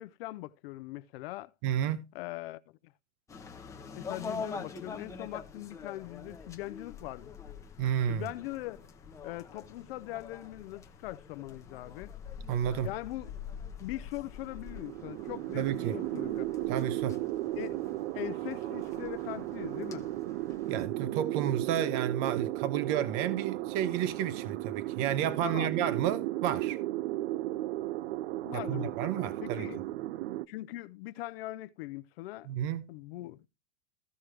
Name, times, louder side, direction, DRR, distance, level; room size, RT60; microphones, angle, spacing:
voice 1, 0.0-1.5 2.1-2.9 3.9-7.3 8.1-8.9 9.2-12.1 12.8-13.4 13.8-16.5 17.6-17.8 18.1-20.1 25.4-25.7 28.4-29.8 30.5-32.6 32.9-33.5, left 17 dB, 55° left, 0.5 m, -41 dB
voice 2, 1.6-2.0 7.8-8.2 12.5-12.9 15.5-15.9 16.7-17.1 20.7-26.8 28.5-29.7 32.5-32.9, right 10 dB, 45° right, 0.8 m, -31 dB
sound 1, 3.3-20.9, left 5 dB, 10° left, 0.7 m, -47 dB
sound 2, 6.9-14.8, left 8 dB, 35° left, 0.9 m, -48 dB
sound 3, 14.5-30.5, right 16 dB, 65° right, 0.5 m, -35 dB
15.0 x 6.1 x 3.3 m
supercardioid pair, 165°, 36 cm